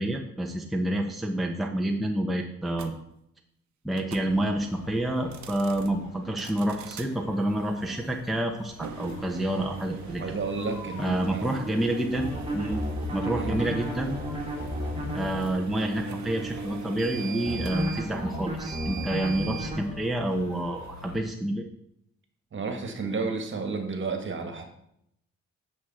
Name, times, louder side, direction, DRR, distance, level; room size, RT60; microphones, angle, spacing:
voice 1, 0.0-2.9 3.8-10.2 11.0-12.3 12.5-12.8 13.1-14.2 15.1-21.6, right 1 dB, ahead, 1 dB, 0.9 m, -28 dB
sound 1, 2.7-2.9 3.9-4.3 5.2-5.9 6.4-7.1 8.7-19.7, right 5 dB, 70° right, 0.9 m, -40 dB
sound 2, 4.3-21.2, left 4 dB, 65° left, 1.5 m, -47 dB
voice 2, 10.2-11.6 13.2-13.6 19.1-19.2 22.5-24.6, right 4 dB, 40° right, 5 dB, 1.7 m, -32 dB
sound 3, 12.2-15.4 17.5-19.8, equal, 20° right, 1.9 m, -32 dB
8.5 x 6.4 x 4.2 m, 0.76 s
cardioid pair, 90°, 30 cm